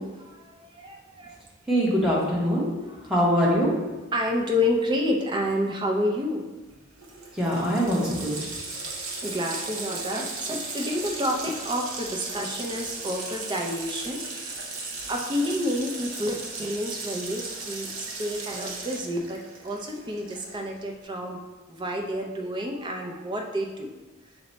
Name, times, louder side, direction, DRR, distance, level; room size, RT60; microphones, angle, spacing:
voice 1, 0.0-1.4 2.9-3.0 4.1-6.4 9.2-14.6 15.1-21.4 21.7-23.9, left 1 dB, 20° right, 1 dB, 0.4 m, -29 dB
voice 2, 1.7-2.7 3.1-3.7 7.3-8.3, equal, 5° right, -6 dB, 0.8 m, -23 dB
Water tap faucet, 6.7-6.8 7.0-20.8, right 3 dB, 75° right, 0.8 m, -36 dB
5.7 x 2.1 x 3.9 m, 1.2 s
head